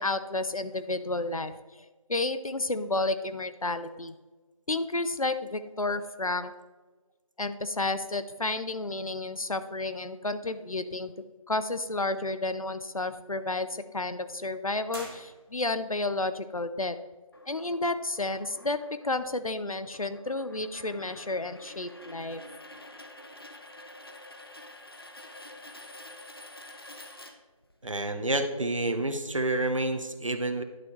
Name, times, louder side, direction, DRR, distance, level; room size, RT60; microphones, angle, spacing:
voice 1, 0.0-1.5 2.1-4.1 4.7-6.5 7.4-11.1 11.5-17.0 17.5-18.8 19.0-22.4, left 2 dB, 75° left, 11 dB, 0.7 m, -31 dB
sound 1, 14.9-15.9, right 1 dB, 40° right, 1.9 m, -45 dB
sound 2, 17.3-27.9, left 1 dB, 45° left, 0.8 m, -48 dB
voice 2, 27.8-30.6, right 2 dB, 60° right, 8 dB, 1.0 m, -29 dB
11.0 x 7.0 x 3.2 m, 1.3 s
figure-of-eight pair, 170°, 18 cm